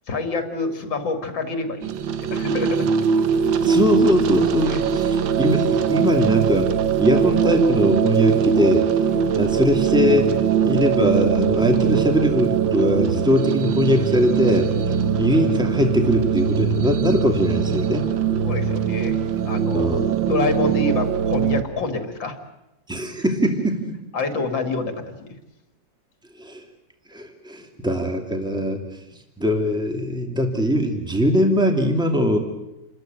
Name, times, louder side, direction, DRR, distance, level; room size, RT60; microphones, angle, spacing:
voice 1, 0.1-2.9 3.3-3.4 4.6-4.8 9.0-9.5 11.5-11.7 14.8-15.1 18.4-19.2 19.4-22.4 24.1-25.3, left 3 dB, 85° left, 6 dB, 3.1 m, -27 dB
sound 1, 1.8-21.6, right 7 dB, 85° right, 1.8 m, -21 dB
voice 2, 3.6-6.7 7.0-8.8 9.4-10.3 10.6-14.7 15.2-18.1 19.7-20.3 22.9-23.9 26.4-26.6 27.1-28.8 29.4-32.4, equal, ahead, 3 dB, 2.6 m, -21 dB
28.5 x 14.0 x 9.2 m, 0.91 s
omnidirectional pair, 2.0 m